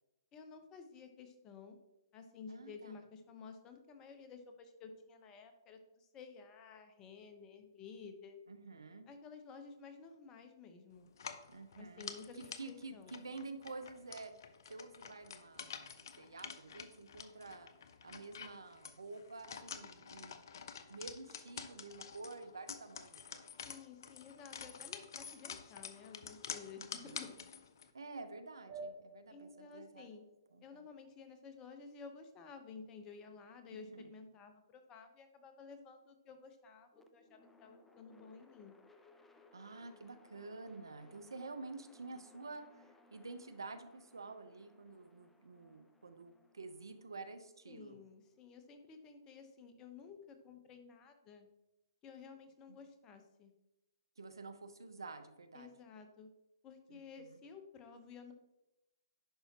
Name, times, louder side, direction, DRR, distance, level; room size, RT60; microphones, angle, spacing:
voice 1, 0.3-1.8 2.1-8.4 9.1-11.1 11.8-13.2 23.6-27.3 29.3-30.2 30.6-38.7 47.7-51.5 52.0-53.5 55.5-56.3 56.6-58.3, left 5 dB, 25° left, 7 dB, 1.0 m, -53 dB
voice 2, 2.5-3.0 8.5-9.1 11.5-12.1 12.6-14.3 14.7-17.7 18.0-20.4 20.9-23.5 26.7-27.2 27.9-30.1 30.5-30.8 33.7-34.1 39.5-48.0 52.7-52.8 54.2-55.7 56.9-57.4, right 3 dB, 80° right, 10 dB, 0.8 m, -50 dB
sound 1, 11.1-27.9, left 7 dB, 60° left, 0.7 m, -49 dB
sound 2, 28.7-31.6, right 3 dB, 45° right, 2.7 m, -52 dB
sound 3, 36.9-49.0, left 3 dB, 5° left, 0.6 m, -66 dB
10.5 x 5.7 x 2.9 m, 0.94 s
hypercardioid pair, 130°, 2 cm